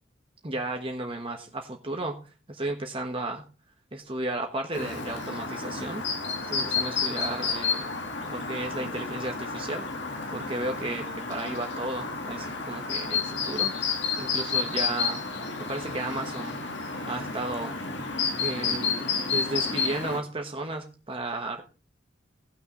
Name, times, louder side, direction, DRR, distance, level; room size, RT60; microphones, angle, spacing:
voice 1, 0.4-2.2 2.5-3.5 3.9-6.0 6.5-7.9 8.2-9.8 10.3-13.9 14.2-15.2 15.7-17.7 18.4-21.6, right 2 dB, 30° right, 3 dB, 1.2 m, -34 dB
Chirp tweet, 4.7-20.2, left 5 dB, 70° left, 1.9 m, -31 dB
18.0 x 6.4 x 3.1 m, 0.34 s
head